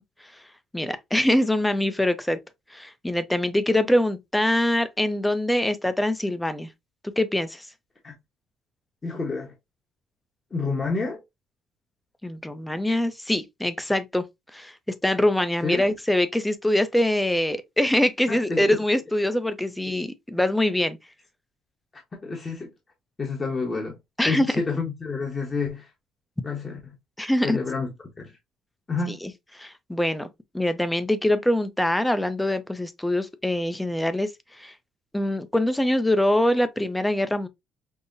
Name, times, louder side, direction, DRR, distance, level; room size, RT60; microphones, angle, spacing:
voice 1, 0.7-2.4 2.7-6.7 7.2-7.7 12.2-14.2 14.5-21.0 24.2-24.5 27.2-27.6 29.1-29.3 29.6-30.3 30.5-34.3 34.6-34.7 35.1-37.5, left 1 dB, 5° left, 0.5 m, -24 dB
voice 2, 9.0-9.5 10.5-11.2 15.6-15.9 18.3-18.8 19.9-20.0 22.2-22.7 23.2-24.0 24.2-25.9 26.4-26.8 27.4-27.9 28.2-28.3 28.9-29.2, left 4 dB, 25° left, 0.9 m, -29 dB
5.4 x 2.1 x 2.5 m
cardioid pair, 115°, 0 cm